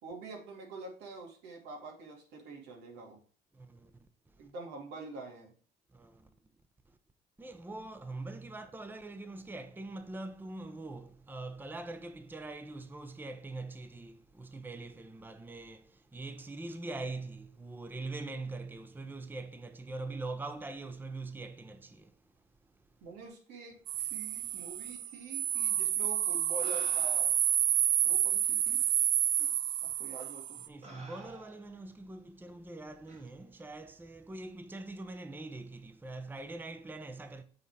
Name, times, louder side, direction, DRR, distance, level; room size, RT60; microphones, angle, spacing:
voice 1, 0.0-3.2 4.4-5.5 23.0-27.3 28.0-28.8 30.0-30.6, right 3 dB, 90° right, 2.4 m, -46 dB
voice 2, 3.5-4.1 5.9-6.3 7.4-22.1 30.7-37.4, right 2 dB, 10° right, 0.7 m, -43 dB
sound 1, 23.9-30.7, right 11 dB, 55° right, 0.5 m, -29 dB
sound 2, 26.0-26.1 26.6-27.5 28.4-28.5 29.4-29.5 30.2-30.4 30.8-31.8 33.1-33.3, right 3 dB, 40° right, 1.9 m, -52 dB
7.9 x 4.1 x 4.7 m
cardioid pair, 110°, 17 cm